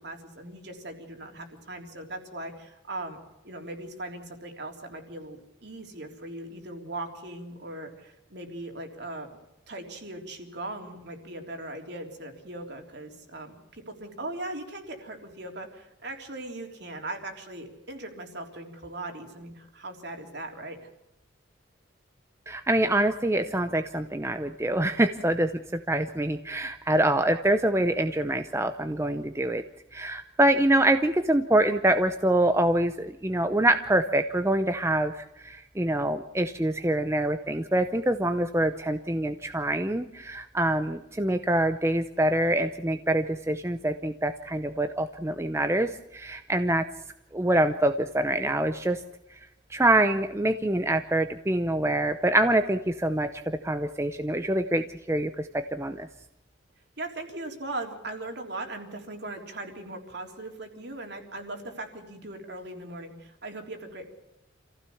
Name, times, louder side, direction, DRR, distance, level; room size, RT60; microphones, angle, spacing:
voice 1, 0.0-9.3 9.7-20.9 57.0-64.1, right 2 dB, 60° right, 4 dB, 3.5 m, -39 dB
voice 2, 22.5-29.6 29.9-46.8 47.3-49.0 49.3-49.4 49.7-56.1, right 1 dB, 15° right, 8 dB, 0.7 m, -25 dB
26.5 x 15.5 x 7.1 m, 0.93 s
head